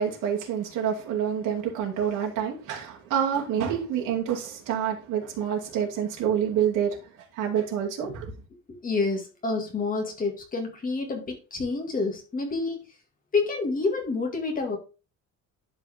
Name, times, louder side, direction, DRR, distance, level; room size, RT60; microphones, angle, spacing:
voice 1, 0.0-8.3, right 8 dB, 85° right, 2.7 m, -27 dB
voice 2, 8.7-12.8 13.3-14.8, left 3 dB, 25° left, 2.3 m, -28 dB
11.5 x 4.9 x 3.6 m
cardioid pair, 170°, 31 cm